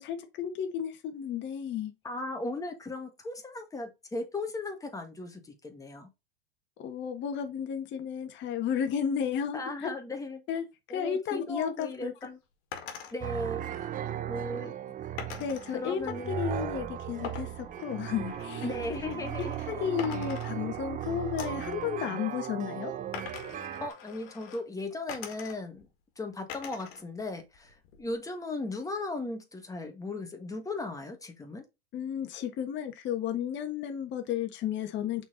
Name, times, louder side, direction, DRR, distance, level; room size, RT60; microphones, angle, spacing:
voice 1, 0.0-1.9 6.8-9.9 10.5-10.7 10.9-12.1 14.0-14.1 15.4-16.0 16.4-18.7 19.7-22.9 31.9-35.2, left 8 dB, 35° left, 1.4 m, -33 dB
voice 2, 2.0-6.1 9.5-10.4 10.9-12.4 13.1-13.9 14.1-14.8 15.7-16.4 18.6-19.9 23.8-25.9 26.2-31.6, left 2 dB, 10° left, 1.8 m, -37 dB
sound 1, 12.7-13.1 15.2-15.7 17.2-19.7 20.0-21.0 21.4-21.7 23.1-24.6 25.1-25.8 26.5-27.0 27.4-28.2, left 8 dB, 70° left, 2.0 m, -43 dB
sound 2, 13.2-23.9, right 10 dB, 25° right, 0.7 m, -37 dB
6.0 x 4.3 x 3.9 m
hypercardioid pair, 120°, 31 cm